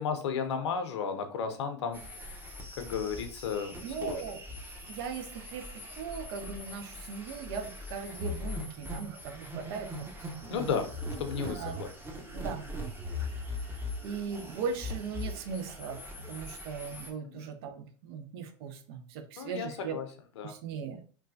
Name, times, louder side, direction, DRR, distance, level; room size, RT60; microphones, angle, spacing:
voice 1, 0.0-2.0 2.7-3.7 4.0-4.2 10.5-10.9 11.2-11.6 17.2-17.5 19.4-20.1 20.4-20.5, left 6 dB, 70° left, 7 dB, 0.6 m, -33 dB
sound 1, 1.9-17.1, left 1 dB, 15° right, 0.8 m, -40 dB
voice 2, 3.8-4.4 4.9-10.8 11.4-11.8 12.3-12.7 13.1-16.0 16.3-20.0 20.4-21.0, right 6 dB, 60° right, 8 dB, 0.5 m, -39 dB
3.1 x 2.2 x 2.5 m, 0.43 s
hypercardioid pair, 90°, 15 cm